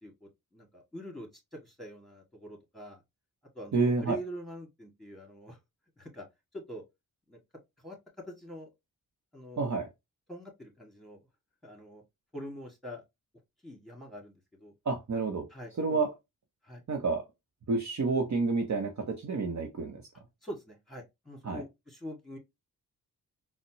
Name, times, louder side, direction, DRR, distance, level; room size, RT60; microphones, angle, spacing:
voice 1, 0.0-3.0 3.5-5.6 6.0-6.2 6.5-6.8 7.3-7.4 7.8-8.0 8.3-8.7 9.3-9.8 10.3-11.2 11.6-12.0 12.3-13.0 13.6-14.7 15.5-16.0 16.6-16.8 20.4-22.4, equal, ahead, 2.0 m, -44 dB
voice 2, 3.7-4.2 9.6-9.9 14.9-15.5 15.8-16.1 16.9-17.2 17.7-20.0 21.4-21.6, right 4 dB, 45° right, 0.9 m, -29 dB
4.1 x 2.1 x 3.0 m
supercardioid pair, 40°, 39 cm